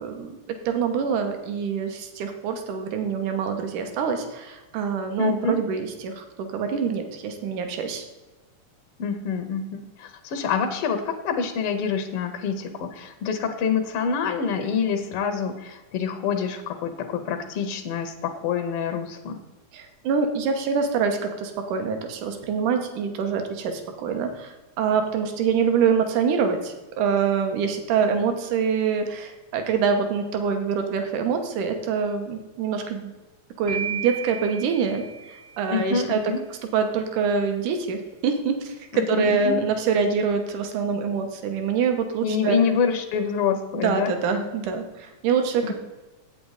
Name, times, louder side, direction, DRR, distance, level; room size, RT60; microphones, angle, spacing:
voice 1, 0.0-8.0 19.7-33.1 33.6-36.2 36.7-42.6 43.8-45.8, right 6 dB, 80° right, 6 dB, 2.5 m, -25 dB
voice 2, 5.2-5.6 9.0-19.4 35.7-36.4 38.9-39.6 42.2-44.1 45.6-45.8, left 6 dB, 75° left, 6 dB, 1.3 m, -26 dB
sound 1, 33.7-35.8, right 8 dB, 65° right, 0.3 m, -34 dB
8.5 x 8.4 x 4.0 m, 1.1 s
omnidirectional pair, 3.6 m